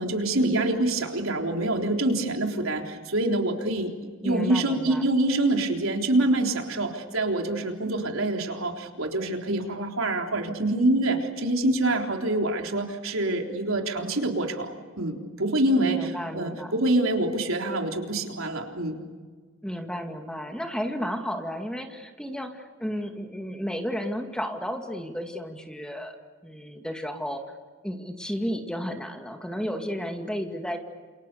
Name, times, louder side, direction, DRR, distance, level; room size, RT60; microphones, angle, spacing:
voice 1, 0.0-3.9 4.2-19.0, right 2 dB, 80° right, 3 dB, 3.8 m, -26 dB
voice 2, 4.2-5.1 15.8-16.7 19.6-26.2 26.4-27.4 27.8-30.8, equal, 5° left, 4 dB, 2.2 m, -33 dB
29.5 x 28.5 x 7.0 m, 1.5 s
head